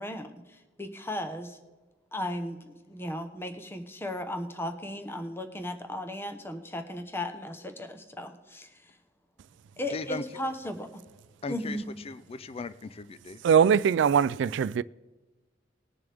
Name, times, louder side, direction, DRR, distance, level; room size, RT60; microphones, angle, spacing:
voice 1, 0.0-1.6 2.1-8.8 9.8-11.0 11.5-11.8, left 1 dB, 15° left, 0.9 m, -36 dB
voice 2, 9.9-10.2 11.4-13.4, left 3 dB, 30° left, 0.4 m, -38 dB
voice 3, 13.4-14.8, right 7 dB, 70° right, 0.3 m, -21 dB
20.5 x 7.0 x 3.4 m
head